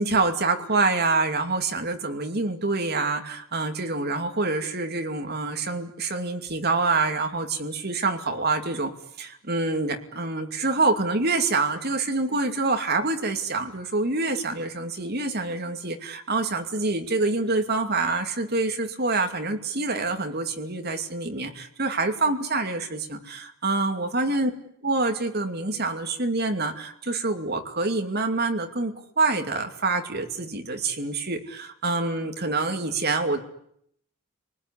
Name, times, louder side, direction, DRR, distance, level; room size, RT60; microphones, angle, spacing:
voice 1, 0.0-8.9 9.2-24.5 24.8-33.4, right 3 dB, 50° right, 5 dB, 2.6 m, -26 dB
30.0 x 20.0 x 9.9 m, 0.73 s
head